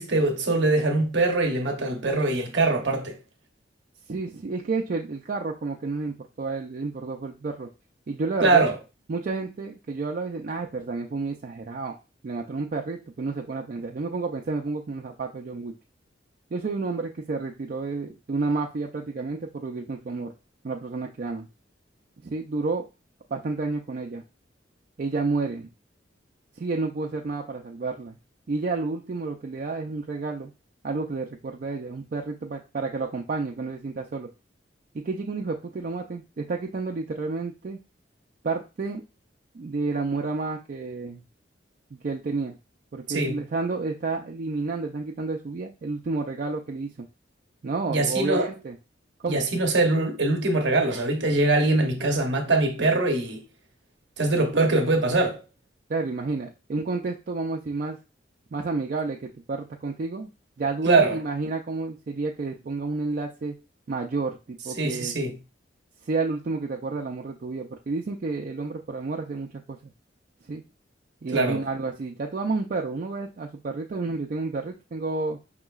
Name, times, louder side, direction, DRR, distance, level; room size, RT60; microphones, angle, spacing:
voice 1, 0.0-3.2 8.4-8.7 43.1-43.4 47.9-48.5 49.3-53.4 54.2-55.4 60.8-61.2 64.8-65.3 71.3-71.6, right 2 dB, 65° right, 0.8 m, -22 dB
voice 2, 4.1-7.7 8.1-8.7 9.1-11.9 12.2-15.7 16.5-20.3 20.6-21.5 22.2-22.8 23.3-24.2 25.0-25.7 26.6-28.2 28.5-30.5 30.8-34.3 34.9-37.8 38.4-39.0 39.5-41.2 41.9-42.5 42.9-47.1 47.6-48.8 49.2-49.4 55.9-58.0 58.5-60.3 60.6-63.6 63.9-65.2 66.0-69.8 70.5-70.6 71.2-75.4, right 3 dB, 50° right, 0.4 m, -30 dB
5.3 x 2.9 x 2.3 m
head